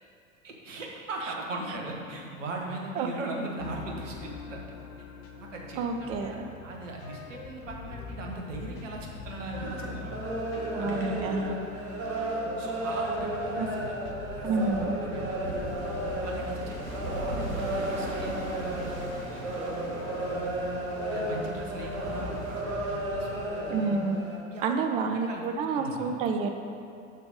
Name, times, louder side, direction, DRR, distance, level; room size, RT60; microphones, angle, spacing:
voice 1, 0.4-4.7 5.0-5.1 5.4-6.4 6.6-10.2 10.8-11.4 12.6-14.0 14.3-15.5 15.8-16.8 17.1-20.7 21.1-23.4 24.5-25.4 25.7-26.1, right 2 dB, 65° right, 0 dB, 1.4 m, -39 dB
sound 1, 3.6-23.4, left 5 dB, 40° left, 1.0 m, -44 dB
voice 2, 5.8-6.4 10.7-11.6 13.6-13.7 14.4-14.9 23.7-24.2 24.6-26.5, right 4 dB, 15° right, 5 dB, 0.3 m, -29 dB
sound 2, 9.3-24.4, right 1 dB, 35° right, 1.7 m, -33 dB
sound 3, 15.4-22.6, right 2 dB, 85° right, 1.2 m, -40 dB
6.9 x 6.2 x 5.3 m, 2.5 s
figure-of-eight pair, 80°, 40 cm